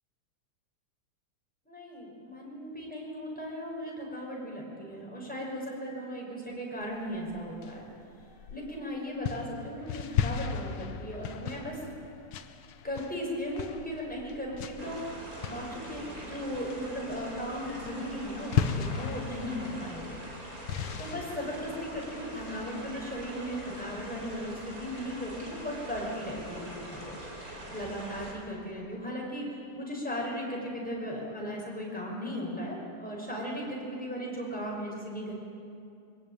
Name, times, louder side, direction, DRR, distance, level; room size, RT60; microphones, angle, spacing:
voice 1, 1.7-7.9 8.5-11.8 12.8-15.1 15.4-20.6 21.0-27.2 27.5-35.3, equal, 5° left, -3 dB, 5.8 m, -37 dB
sound 1, 7.1-8.8 9.2-16.3 16.5-17.0 17.3-17.6 17.8-21.4, left 8 dB, 75° left, 1.7 m, -36 dB
sound 2, 14.8-28.3, right 1 dB, 40° right, 4.9 m, -43 dB
22.5 x 19.5 x 9.1 m, 2.5 s
omnidirectional pair, 2.4 m